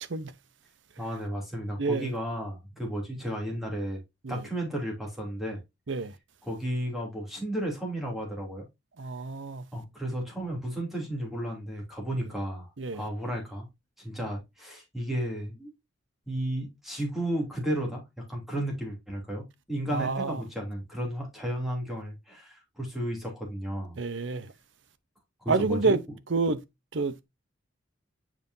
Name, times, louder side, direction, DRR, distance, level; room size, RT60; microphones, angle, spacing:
voice 1, 1.0-4.0 4.3-5.6 6.5-8.6 9.7-13.7 14.0-15.7 16.3-18.0 18.3-24.0 25.4-25.9, right 1 dB, ahead, 2.7 m, -33 dB
voice 2, 1.8-2.1 4.2-4.5 5.9-6.1 9.0-9.7 12.8-13.0 19.9-20.4 23.9-24.5 25.5-26.0 26.3-26.6 26.9-27.2, right 3 dB, 65° right, 0.7 m, -28 dB
7.4 x 5.3 x 2.7 m
head